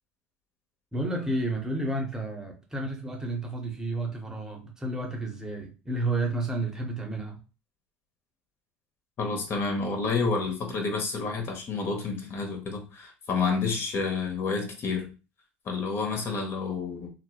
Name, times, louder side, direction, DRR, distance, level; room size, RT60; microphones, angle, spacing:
voice 1, 0.9-7.4, right 2 dB, 10° right, 0.7 m, -31 dB
voice 2, 9.2-15.0 15.6-17.1, left 4 dB, 40° left, 0.8 m, -29 dB
2.6 x 2.1 x 2.3 m
hypercardioid pair, 85°, 6 cm